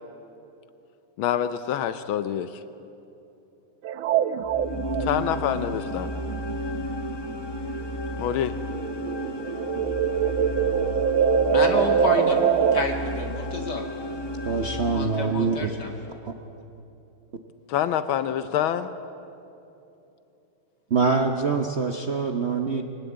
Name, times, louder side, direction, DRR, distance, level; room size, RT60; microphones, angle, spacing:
voice 1, 1.2-2.6 5.0-6.1 8.2-8.6 17.7-18.9, left 10 dB, 80° left, 12 dB, 1.5 m, -26 dB
sound 1, 3.9-8.0 8.3-12.8, right 8 dB, 80° right, 1.5 m, -24 dB
sound 2, 4.4-15.8, left 1 dB, 30° left, 0.5 m, -33 dB
voice 2, 11.5-12.4 12.7-13.9 14.9-15.9, left 3 dB, 55° left, 3 dB, 2.8 m, -29 dB
voice 3, 14.4-15.7 16.2-16.3 20.9-22.8, right 4 dB, 45° right, 4 dB, 0.9 m, -24 dB
23.0 x 18.5 x 8.6 m, 2.8 s
omnidirectional pair, 2.3 m